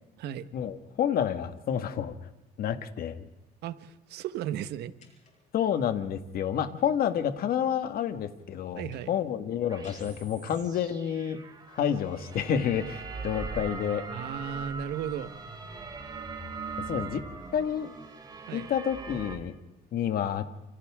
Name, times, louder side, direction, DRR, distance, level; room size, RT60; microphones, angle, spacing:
voice 1, 0.5-2.2 2.6-3.2 5.5-11.4 11.7-14.0 16.9-17.2 17.5-17.9 18.5-19.5 19.9-20.5, left 9 dB, 60° left, 8 dB, 1.9 m, -29 dB
voice 2, 3.6-4.9 8.8-9.1 14.1-15.4 18.5-18.7, right 10 dB, 80° right, 11 dB, 1.4 m, -35 dB
sound 1, 5.0-5.6 8.9-9.2 9.8-10.9, left 5 dB, 45° left, 7.2 m, -51 dB
sound 2, 9.7-19.4, right 4 dB, 25° right, 5.9 m, -40 dB
29.5 x 28.5 x 3.7 m, 0.98 s
cardioid pair, 110°, 17 cm